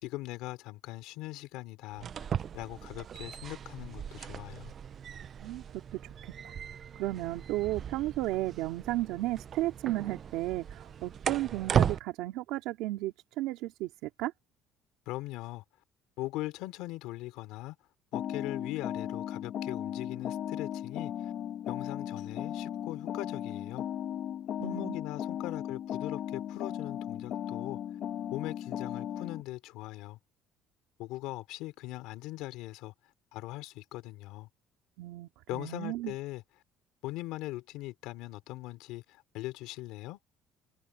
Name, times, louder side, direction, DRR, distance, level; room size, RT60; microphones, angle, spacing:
voice 1, 0.0-2.3 2.5-4.7 15.0-15.6 16.2-17.8 18.1-21.3 21.7-23.8 24.6-27.8 28.3-30.2 31.0-32.9 33.3-34.5 35.5-36.4 37.0-40.2, left 17 dB, 80° left, 3.2 m, -40 dB
sound 1, 1.9-12.0, right 8 dB, 35° right, 0.6 m, -36 dB
voice 2, 5.9-6.5 6.9-14.3 24.6-25.0 35.0-36.1, right 17 dB, 80° right, 2.6 m, -34 dB
sound 2, 18.1-29.4, left 10 dB, 45° left, 1.6 m, -36 dB
cardioid pair, 165°, 0 cm